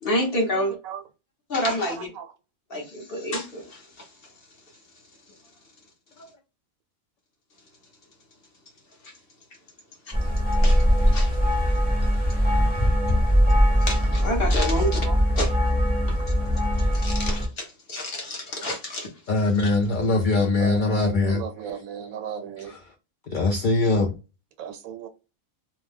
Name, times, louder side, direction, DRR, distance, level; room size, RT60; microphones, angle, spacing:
voice 1, 0.0-0.7 1.5-2.1 2.7-4.1 9.0-9.1 10.6-10.8 11.1-11.4 13.8-15.0 15.4-15.5 16.1-16.2 16.9-19.1 19.6-19.7, left 1 dB, 50° left, 1.0 m, -28 dB
voice 2, 0.5-1.0 1.9-2.3 15.0-15.2 20.6-22.7 24.6-25.1, right 8 dB, 80° right, 1.0 m, -36 dB
sound 1, 10.1-17.5, equal, 10° left, 0.6 m, -21 dB
voice 3, 19.3-21.7 22.6-22.9 23.3-24.1, left 3 dB, 75° left, 0.4 m, -23 dB
2.7 x 2.1 x 3.3 m
omnidirectional pair, 1.4 m